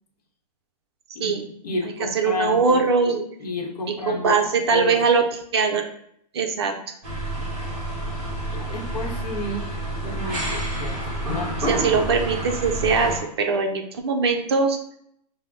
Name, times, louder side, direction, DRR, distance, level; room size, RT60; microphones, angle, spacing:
voice 1, 1.1-2.8 3.4-5.0 8.5-9.8 10.0-11.6, left 3 dB, 65° left, 4 dB, 0.9 m, -32 dB
voice 2, 2.1-3.2 3.9-5.2 5.5-5.8 6.3-6.7 11.7-14.8, right 5 dB, 40° right, 4 dB, 0.4 m, -21 dB
sound 1, 7.0-13.2, right 1 dB, 5° right, 1.4 m, -29 dB
5.8 x 2.1 x 3.6 m, 0.70 s
hypercardioid pair, 175°, 21 cm